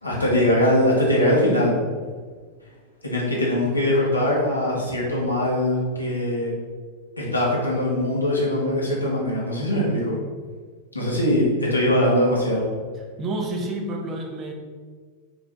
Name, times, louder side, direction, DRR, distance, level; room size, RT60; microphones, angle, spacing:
voice 1, 0.0-1.7 3.0-6.5 7.2-10.1 10.9-12.7, left 1 dB, 85° left, -5 dB, 1.8 m, -21 dB
voice 2, 12.9-14.5, right 2 dB, 30° right, 2 dB, 1.0 m, -29 dB
6.3 x 3.5 x 4.7 m, 1.6 s
figure-of-eight pair, 90°, 0 cm